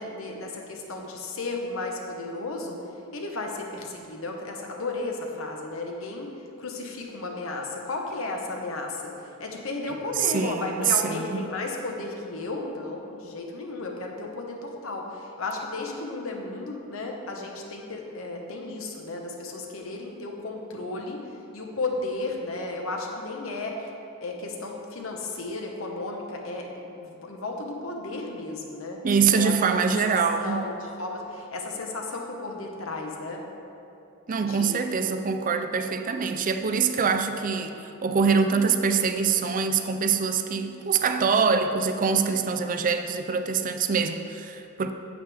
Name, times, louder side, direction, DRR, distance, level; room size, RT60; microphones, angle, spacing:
voice 1, 0.0-2.8 3.1-6.3 6.6-21.2 21.5-23.9 24.2-29.0 29.3-29.5 30.1-33.4 34.4-34.7, left 2 dB, 70° left, 1 dB, 1.1 m, -34 dB
voice 2, 10.2-11.4 29.0-30.7 34.3-37.7 38.0-44.9, right 5 dB, 40° right, 8 dB, 0.4 m, -24 dB
8.8 x 8.1 x 3.5 m, 2.7 s
head